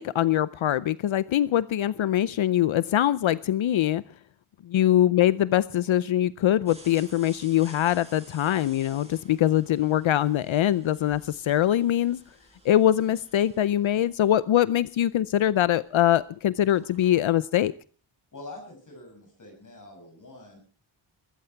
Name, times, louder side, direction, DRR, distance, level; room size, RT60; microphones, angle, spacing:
voice 1, 0.0-4.0 4.6-12.2 12.6-17.7, left 12 dB, 70° left, 17 dB, 0.7 m, -23 dB
sound 1, 6.7-16.2 16.5-17.3, right 1 dB, 10° right, 6.4 m, -53 dB
voice 2, 18.3-20.6, left 2 dB, 40° left, 2 dB, 7.0 m, -45 dB
21.5 x 14.5 x 4.5 m, 0.43 s
wide cardioid pair, 150°, 48 cm